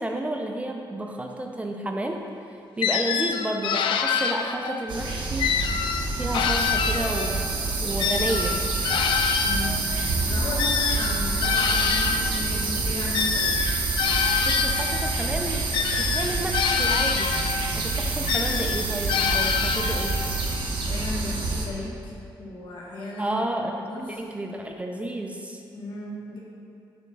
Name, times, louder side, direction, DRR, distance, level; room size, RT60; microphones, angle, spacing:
voice 1, 0.0-2.2 2.8-5.8 6.2-7.4 7.8-8.6 14.4-17.3 17.7-20.2 23.2-25.6, right 1 dB, 15° right, 2 dB, 0.4 m, -31 dB
sound 1, 2.8-4.8 5.4-7.5 8.0-12.3 13.1-15.1 15.7-17.7 18.3-20.3, left 6 dB, 85° left, 0.4 m, -26 dB
sound 2, 4.9-21.7, right 3 dB, 70° right, 0.8 m, -27 dB
voice 2, 9.3-9.9 10.3-13.5 20.7-21.9 22.4-23.3 23.7-24.1 25.7-26.4, left 1 dB, 70° left, -4 dB, 1.6 m, -35 dB
7.0 x 3.5 x 5.8 m, 2.5 s
cardioid pair, 120°, 8 cm